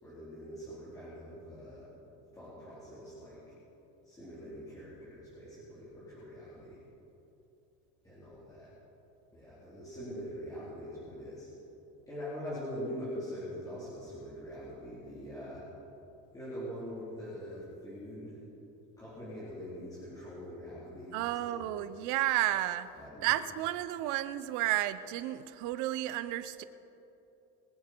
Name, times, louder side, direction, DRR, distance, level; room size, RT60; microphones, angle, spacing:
voice 1, 0.0-1.9 2.3-3.4 4.0-6.8 8.0-8.7 9.3-11.5 12.1-15.6 16.3-18.4 19.0-21.7 22.9-23.3, equal, 10° left, -12 dB, 3.9 m, -43 dB
voice 2, 21.1-22.9 23.2-26.6, right 14 dB, 65° right, 13 dB, 0.7 m, -32 dB
23.5 x 8.6 x 4.5 m, 2.9 s
cardioid pair, 155°, 32 cm